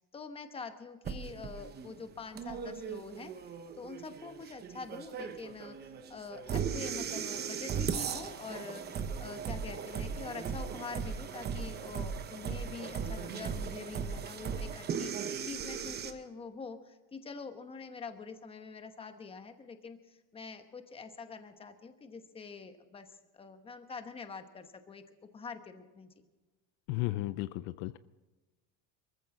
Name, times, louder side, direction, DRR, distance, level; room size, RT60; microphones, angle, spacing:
voice 1, 0.0-3.3 3.8-25.0 25.3-26.1, left 5 dB, 15° left, 8 dB, 1.1 m, -45 dB
sound 1, 1.0-16.1, right 7 dB, 25° right, 0.9 m, -38 dB
voice 2, 26.9-28.0, left 17 dB, 65° left, 15 dB, 0.6 m, -34 dB
23.5 x 14.5 x 3.8 m, 1.2 s
cardioid pair, 155°, 37 cm